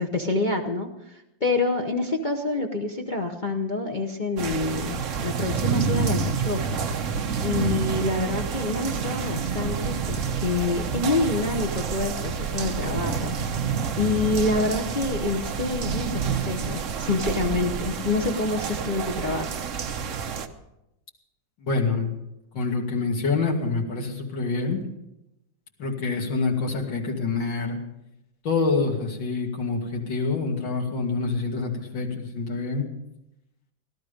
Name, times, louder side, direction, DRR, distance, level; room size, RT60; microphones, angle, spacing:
voice 1, 0.0-6.8 7.4-13.5 14.0-19.5, left 3 dB, 40° left, 1 dB, 0.7 m, -27 dB
sound 1, 4.4-20.5, right 6 dB, 55° right, 0.9 m, -28 dB
voice 2, 21.6-22.1 22.5-24.8 25.8-27.8 28.4-32.9, left 4 dB, 70° left, 0 dB, 2.8 m, -26 dB
17.5 x 12.0 x 5.2 m, 0.90 s
omnidirectional pair, 2.1 m